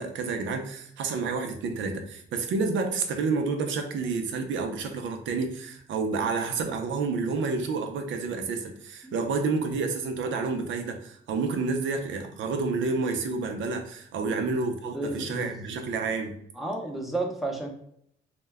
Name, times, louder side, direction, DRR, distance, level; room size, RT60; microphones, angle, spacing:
voice 1, 0.0-16.4, right 4 dB, 70° right, 5 dB, 0.5 m, -29 dB
voice 2, 14.2-14.6 14.9-15.6 16.6-17.7, right 2 dB, ahead, 0 dB, 0.6 m, -32 dB
2.1 x 2.1 x 3.4 m, 0.69 s
cardioid pair, 90°, 20 cm